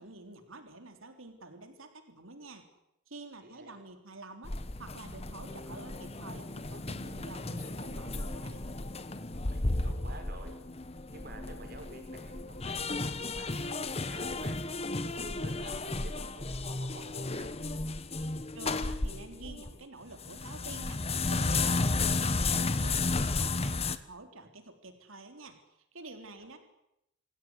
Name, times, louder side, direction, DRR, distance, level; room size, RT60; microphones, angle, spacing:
voice 1, 0.0-2.7 3.1-8.7 18.5-21.0 21.3-25.6 25.9-26.6, right 2 dB, 70° right, 6 dB, 3.7 m, -48 dB
voice 2, 3.4-3.8 9.5-10.6 11.1-14.6 15.0-17.5, right 1 dB, 45° right, 4 dB, 5.7 m, -50 dB
sound 1, 4.4-19.7 20.1-24.0, left 3 dB, 30° left, 1.1 m, -33 dB
26.0 x 16.5 x 9.7 m, 0.82 s
head